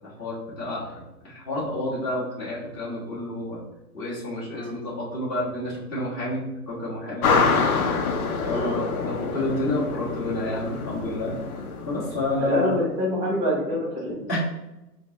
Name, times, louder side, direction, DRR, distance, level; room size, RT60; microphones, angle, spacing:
voice 1, 0.0-3.6 3.9-7.6 8.4-11.4 11.9-12.8 14.3-14.4, left 1 dB, 20° left, -7 dB, 1.4 m, -29 dB
sound 1, 7.2-12.6, left 4 dB, 60° left, 0.8 m, -26 dB
voice 2, 12.4-14.2, equal, 15° right, -5 dB, 1.0 m, -26 dB
4.9 x 2.2 x 2.9 m, 0.96 s
hypercardioid pair, 140°, 48 cm